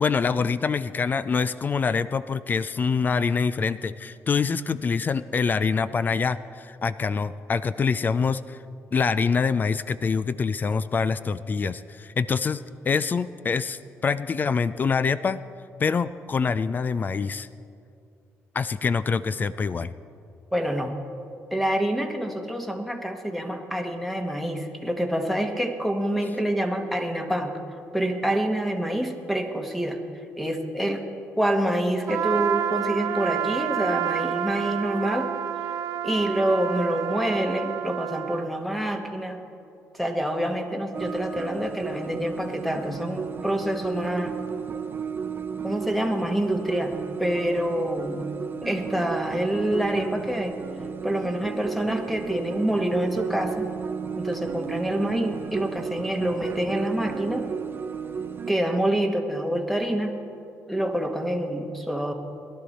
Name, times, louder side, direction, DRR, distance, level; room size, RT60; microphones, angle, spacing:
voice 1, 0.0-8.6 8.9-15.4 15.8-17.5 18.5-19.9, left 5 dB, 35° left, 15 dB, 0.3 m, -25 dB
voice 2, 20.5-21.0 21.5-27.5 27.9-30.0 30.4-31.0 31.4-35.3 36.0-39.4 39.9-44.4 45.6-48.3 48.6-50.6 51.0-53.7 54.2-57.5 58.5-60.2 60.7-62.1, right 1 dB, ahead, 5 dB, 1.2 m, -27 dB
Trumpet, 32.1-38.5, right 10 dB, 80° right, 0.5 m, -29 dB
sound 1, 40.9-58.5, right 6 dB, 40° right, 0.7 m, -33 dB
18.5 x 11.5 x 4.2 m, 2.5 s
cardioid pair, 110°, 5 cm